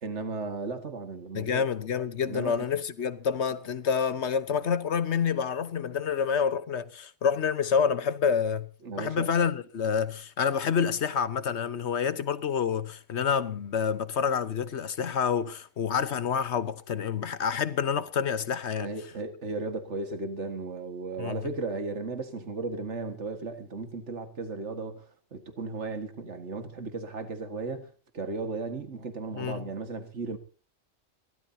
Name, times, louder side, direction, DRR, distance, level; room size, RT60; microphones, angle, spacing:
voice 1, 0.0-1.7 2.2-2.7 8.8-9.3 18.8-25.0 25.3-30.4, right 3 dB, 85° right, 2.1 m, -35 dB
voice 2, 1.3-8.7 9.0-18.9 21.2-21.5 29.3-29.7, left 7 dB, 75° left, 1.4 m, -28 dB
23.0 x 17.0 x 2.8 m
omnidirectional pair, 1.2 m